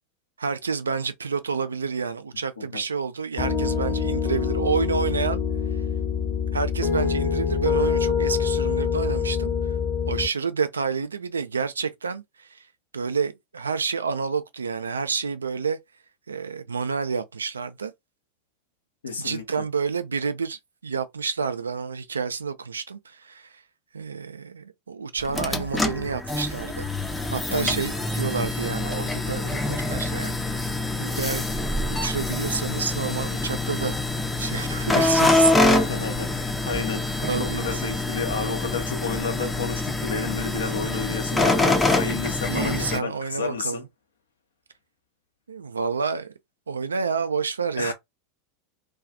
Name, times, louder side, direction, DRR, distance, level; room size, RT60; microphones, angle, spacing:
voice 1, 0.4-5.4 6.5-9.5 10.1-12.7 12.9-15.8 16.3-17.9 19.2-23.6 23.9-26.9 27.3-30.6 31.0-34.0 34.4-35.5 37.2-37.8 42.5-43.9 45.5-46.3 46.7-47.9, right 5 dB, 80° right, 0.3 m, -29 dB
Piano, 3.4-10.3, left 6 dB, 40° left, 1.0 m, -25 dB
voice 2, 19.0-19.6 27.5-27.9 35.6-43.8 47.8-47.9, left 5 dB, 75° left, 0.7 m, -31 dB
sound 1, 25.2-43.0, left 2 dB, 10° left, 0.5 m, -25 dB
2.3 x 2.3 x 2.5 m
figure-of-eight pair, 85°, 0 cm